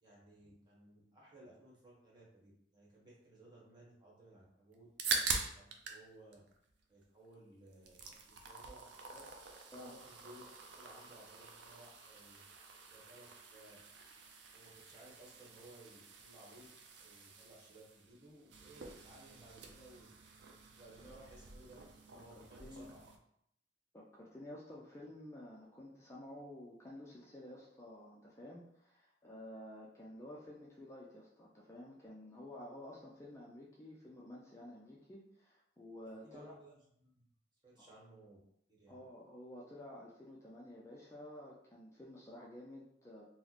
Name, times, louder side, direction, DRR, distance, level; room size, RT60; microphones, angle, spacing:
voice 1, 0.0-6.4 6.9-9.2 9.7-10.4 10.7-12.4 12.9-13.8 14.5-16.7 17.0-20.1 20.7-21.8 22.1-23.0 24.8-24.9 36.2-37.3 37.6-38.4 38.7-39.0, right 1 dB, 25° right, -5 dB, 1.1 m, -59 dB
sound 1, 4.7-6.0 6.3-7.3 7.7-23.2, right 4 dB, 70° right, 0.4 m, -45 dB
voice 2, 22.3-22.9 23.9-36.5 37.8-37.9 38.9-43.2, left 1 dB, 15° left, -4 dB, 0.4 m, -52 dB
3.0 x 2.1 x 3.9 m, 0.73 s
head